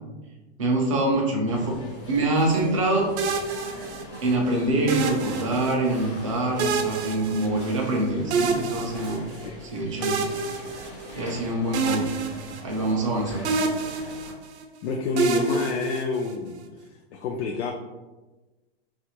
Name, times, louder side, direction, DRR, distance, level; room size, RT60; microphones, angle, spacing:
voice 1, 0.6-1.7 2.1-3.1 4.2-9.2 9.6-10.3 11.2-12.1 12.6-13.6, right 2 dB, 30° right, -1 dB, 0.4 m, -25 dB
sound 1, 1.5-14.3, left 1 dB, 30° left, 0.4 m, -41 dB
sound 2, 3.2-4.3 4.9-6.0 6.6-8.0 8.3-9.5 10.0-11.4 11.7-13.1 13.4-14.6 15.2-16.5, right 4 dB, 85° right, 0.5 m, -28 dB
voice 2, 14.8-16.6 17.1-17.7, left 4 dB, 90° left, 2 dB, 0.5 m, -27 dB
2.8 x 2.4 x 2.9 m, 1.1 s
supercardioid pair, 175°, 33 cm